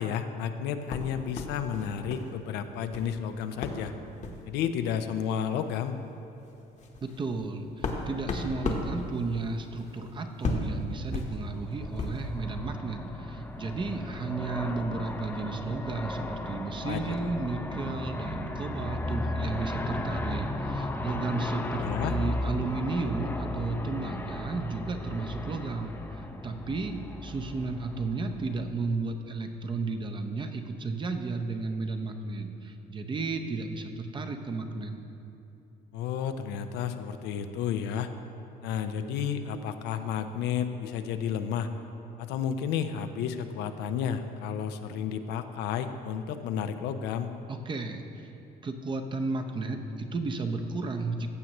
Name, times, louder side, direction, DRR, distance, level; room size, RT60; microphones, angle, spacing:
voice 1, 0.0-3.9 4.4-6.0 16.8-17.3 21.8-22.1 35.9-38.1 38.6-41.7 42.2-47.3, left 8 dB, 85° left, 9 dB, 0.5 m, -32 dB
sound 1, 0.9-2.3 2.6-3.1 3.6-3.8 4.2-4.4 5.3-5.4 5.8-5.9 6.4-12.3, left 3 dB, 45° left, 1.0 m, -35 dB
voice 2, 7.0-34.9 47.5-48.0 48.6-51.3, right 3 dB, 30° right, 6 dB, 0.6 m, -33 dB
Aircraft, 11.6-28.8, left 2 dB, 10° left, 0.5 m, -35 dB
15.0 x 6.4 x 3.0 m, 2.8 s
cardioid pair, 110°, 17 cm